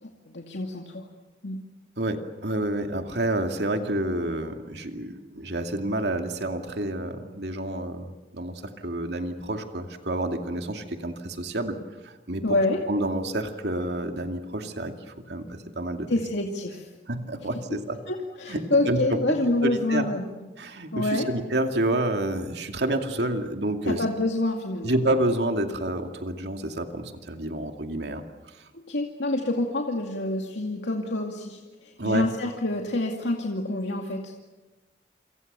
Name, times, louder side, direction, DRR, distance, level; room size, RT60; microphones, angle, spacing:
voice 1, 0.0-1.0 1.4-1.6 12.4-12.8 16.1-16.9 17.7-17.8 18.1-20.3 20.9-21.3 23.9-24.9 28.7-34.3, left 2 dB, 85° left, 1 dB, 2.3 m, -27 dB
voice 2, 2.0-11.8 12.0-12.4 12.9-16.1 17.1-18.0 18.5-19.2 19.6-20.1 20.6-24.0 24.8-28.6 32.0-32.3, right 1 dB, 70° right, 5 dB, 2.4 m, -29 dB
28.5 x 25.5 x 6.9 m, 1.1 s
head